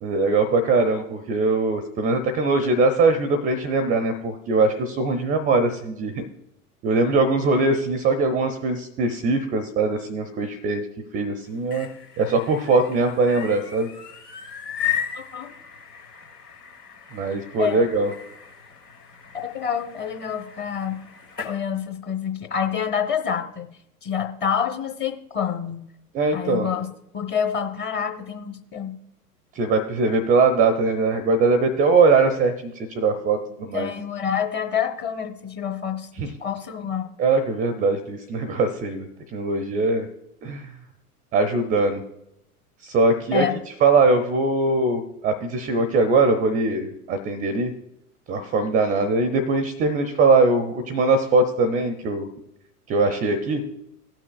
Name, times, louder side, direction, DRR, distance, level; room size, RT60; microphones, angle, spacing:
voice 1, 0.0-6.2 6.8-10.9 11.1-11.9 12.2-13.9 17.1-18.1 26.1-26.7 29.6-33.9 36.2-36.3 37.2-40.1 40.4-40.8 41.3-42.0 42.8-43.4 43.8-47.7 48.3-52.3 52.9-53.6, right 3 dB, 20° right, 9 dB, 0.5 m, -21 dB
sound 1, 11.5-21.6, left 9 dB, 90° left, 1.4 m, -36 dB
voice 2, 15.1-15.5 17.6-17.8 19.5-21.0 21.4-23.7 24.0-25.9 26.3-26.9 27.1-28.9 33.7-37.1 43.3-43.5, left 7 dB, 20° left, 5 dB, 0.9 m, -27 dB
18.0 x 6.0 x 2.4 m, 0.82 s
figure-of-eight pair, 90°, 46 cm